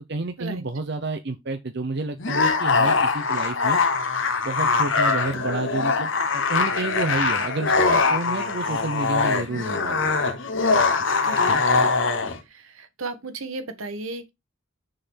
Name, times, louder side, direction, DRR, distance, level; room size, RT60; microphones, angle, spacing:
voice 1, 0.1-3.8 4.4-10.2 11.5-11.6, right 3 dB, 50° right, 0.7 m, -30 dB
sound 1, 2.2-12.4, left 4 dB, 60° left, 1.2 m, -22 dB
voice 2, 11.2-11.5 12.5-14.3, right 3 dB, 75° right, 1.3 m, -34 dB
6.5 x 3.9 x 6.1 m
head